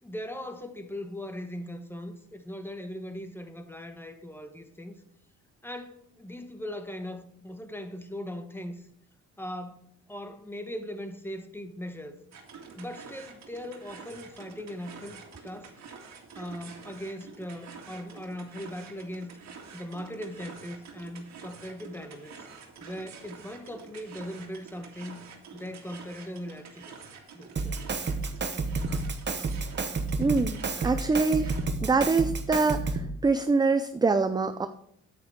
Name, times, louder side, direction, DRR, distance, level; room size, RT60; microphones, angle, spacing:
voice 1, 0.0-5.0 5.6-8.9 9.4-12.2 12.8-15.7 16.3-19.3 19.7-22.5 22.8-25.2 25.5-26.8 27.3-27.8, equal, 5° left, 1.2 m, -39 dB
sound 1, 12.3-31.7, right 5 dB, 65° right, 2.1 m, -48 dB
Drum kit, 27.6-33.2, right 3 dB, 35° right, 1.1 m, -30 dB
voice 2, 30.2-31.5 31.8-34.7, right 4 dB, 15° right, 0.5 m, -25 dB
9.5 x 8.8 x 3.7 m
cardioid pair, 90°, 30 cm